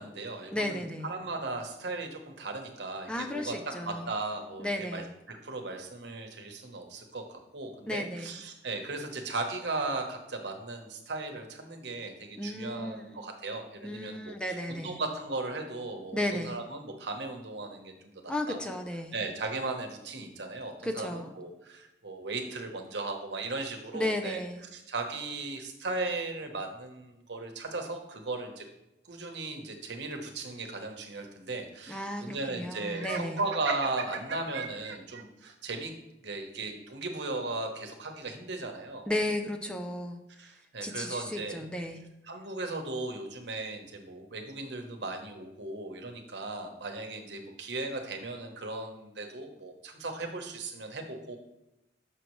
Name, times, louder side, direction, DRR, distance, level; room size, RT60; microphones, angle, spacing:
voice 1, 0.0-18.8 19.1-24.4 24.7-28.6 29.0-35.9 36.2-39.1 40.4-41.6 42.3-51.4, right 3 dB, 70° right, 4 dB, 1.0 m, -37 dB
voice 2, 0.5-1.1 3.1-4.1 4.6-5.1 7.9-8.3 12.4-13.2 13.8-15.0 16.1-16.6 18.3-19.1 20.8-21.3 23.9-24.7 31.9-33.4 39.1-40.2 40.8-42.0, left 1 dB, 5° left, 5 dB, 0.4 m, -34 dB
Laughter, 32.9-35.2, right 5 dB, 85° right, 0.7 m, -37 dB
6.4 x 6.3 x 3.1 m, 0.92 s
head